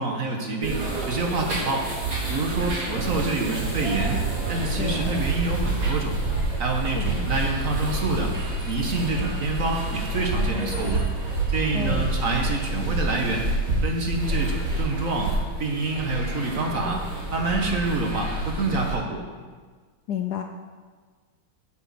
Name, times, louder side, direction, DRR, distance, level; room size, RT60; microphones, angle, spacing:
voice 1, 0.0-1.9 2.3-4.2 4.5-6.2 6.6-8.3 8.6-11.0 11.5-13.5 13.8-15.3 15.6-17.0 17.3-19.2, right 3 dB, 45° right, 1 dB, 1.5 m, -27 dB
sound 1, 0.6-18.9, right 2 dB, 80° right, 4.6 m, -28 dB
voice 2, 4.8-5.1 7.0-7.1 11.7-12.1 20.1-20.4, left 9 dB, 70° left, 5 dB, 1.0 m, -30 dB
8.3 x 6.5 x 7.7 m, 1.5 s
omnidirectional pair, 2.2 m